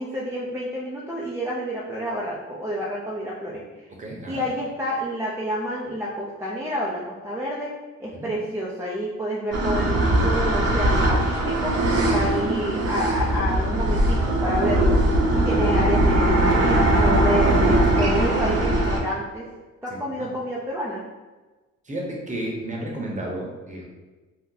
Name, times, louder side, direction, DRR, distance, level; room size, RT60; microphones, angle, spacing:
voice 1, 0.0-3.6 4.2-7.7 8.0-15.0 15.3-19.5 19.8-21.0, equal, 10° right, -5 dB, 0.4 m, -29 dB
voice 2, 3.9-4.5 8.2-8.3 12.1-12.2 15.4-15.6 19.9-20.3 21.8-23.8, right 1 dB, 25° right, -1 dB, 0.8 m, -33 dB
sound 1, 9.5-19.0, right 1 dB, 55° right, 0.8 m, -20 dB
2.7 x 2.0 x 3.8 m, 1.2 s
cardioid pair, 90°, 30 cm